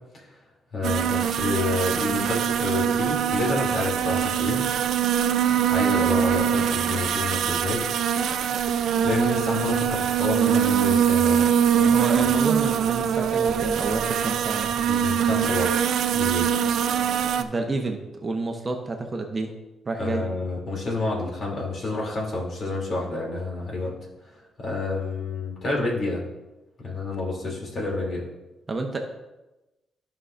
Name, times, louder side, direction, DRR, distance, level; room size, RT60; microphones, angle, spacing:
voice 1, 0.7-4.6 5.7-12.0 14.9-15.8 16.1-16.5 20.0-23.9 24.6-26.2 26.8-28.2, left 2 dB, 50° left, -3 dB, 2.9 m, -29 dB
sound 1, 0.8-17.4, right 8 dB, 80° right, 0.5 m, -23 dB
voice 2, 11.9-14.9 17.4-19.5 19.9-20.2 28.7-29.0, right 3 dB, 30° right, 3 dB, 0.9 m, -29 dB
13.5 x 5.6 x 2.6 m, 1.0 s
cardioid pair, 110°, 0 cm